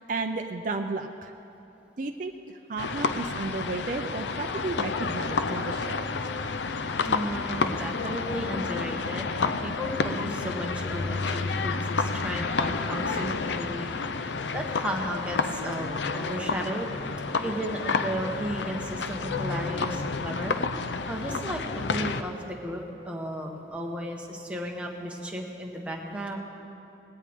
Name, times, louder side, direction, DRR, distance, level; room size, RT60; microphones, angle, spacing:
voice 1, 0.0-1.3 2.0-6.1 13.1-13.4, right 3 dB, 45° right, 4 dB, 0.5 m, -33 dB
sound 1, 2.8-22.2, left 4 dB, 80° left, 0.5 m, -30 dB
voice 2, 7.0-13.9 14.2-16.9 17.4-20.6 21.1-26.4, equal, 5° right, 0 dB, 1.2 m, -34 dB
19.5 x 17.0 x 3.6 m, 2.8 s
head